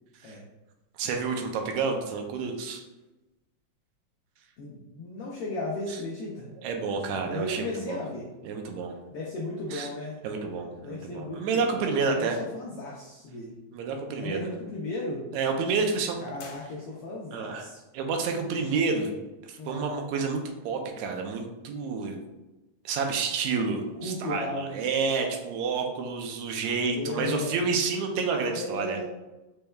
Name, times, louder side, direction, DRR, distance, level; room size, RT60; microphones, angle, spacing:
voice 1, 1.0-2.8 6.6-8.0 8.4-8.9 9.7-9.9 10.2-12.4 13.7-14.5 15.3-16.2 17.3-17.6 17.9-19.1 19.5-22.2 22.9-29.0, right 4 dB, 80° right, 3 dB, 1.8 m, -29 dB
voice 2, 4.6-6.5 7.3-8.3 9.1-10.2 10.8-13.5 14.2-15.3 16.2-17.8 19.6-19.8 23.9-24.8 26.9-27.6 28.4-29.0, left 2 dB, 85° left, -4 dB, 1.3 m, -35 dB
sound 1, 16.4-17.4, left 4 dB, 70° left, 1.7 m, -49 dB
5.3 x 4.4 x 2.3 m, 1.1 s
omnidirectional pair, 3.6 m